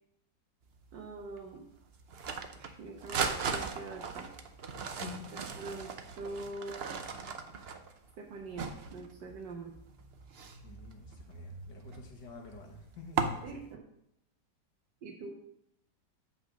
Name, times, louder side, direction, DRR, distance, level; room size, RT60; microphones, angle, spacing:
sound 1, 0.7-13.7, right 5 dB, 55° right, 0.7 m, -39 dB
voice 1, 0.9-1.6 2.6-4.3 5.6-6.8 8.2-9.7 13.4-13.8 15.0-15.3, right 3 dB, 80° right, 0 dB, 1.7 m, -43 dB
voice 2, 10.6-13.5, left 4 dB, 75° left, 1 dB, 2.1 m, -48 dB
8.6 x 5.3 x 6.3 m, 0.76 s
omnidirectional pair, 1.9 m